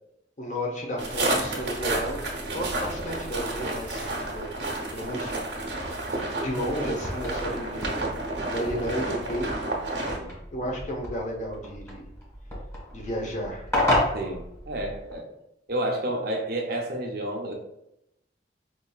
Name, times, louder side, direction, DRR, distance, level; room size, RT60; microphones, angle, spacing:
voice 1, 0.4-4.6 4.9-5.4 6.4-7.9 8.4-9.5 10.5-12.1 12.9-13.7, equal, 45° left, -1 dB, 0.8 m, -33 dB
sound 1, 1.0-10.2, right 2 dB, 90° right, 0.9 m, -31 dB
sound 2, 6.4-15.1, left 1 dB, 15° left, 1.3 m, -32 dB
voice 2, 14.1-15.3 15.7-17.5, right 1 dB, 60° right, 1 dB, 0.6 m, -30 dB
4.7 x 2.6 x 2.3 m, 0.82 s
head